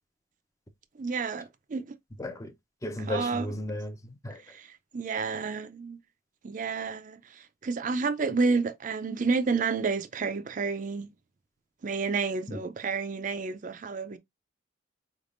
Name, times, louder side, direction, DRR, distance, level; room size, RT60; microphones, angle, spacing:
voice 1, 1.0-1.9 3.0-3.5 4.5-6.0 6.4-11.1 11.8-14.2, right 4 dB, 40° right, 0.4 m, -30 dB
voice 2, 2.2-2.5 2.8-4.0 4.2-4.4 12.5-12.6, left 1 dB, 15° left, 0.5 m, -34 dB
4.8 x 3.5 x 2.5 m
head